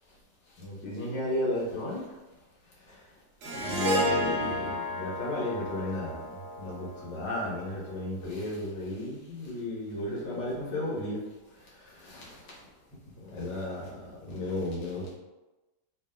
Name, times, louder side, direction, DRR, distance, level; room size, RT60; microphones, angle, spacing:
voice 1, 0.6-2.0 3.5-11.2 12.0-12.3 13.3-13.9 14.3-15.1, left 1 dB, 80° left, -6 dB, 1.8 m, -34 dB
Harp, 3.4-7.8, equal, 65° right, 0.7 m, -32 dB
3.6 x 2.3 x 3.6 m, 1.1 s
omnidirectional pair, 1.9 m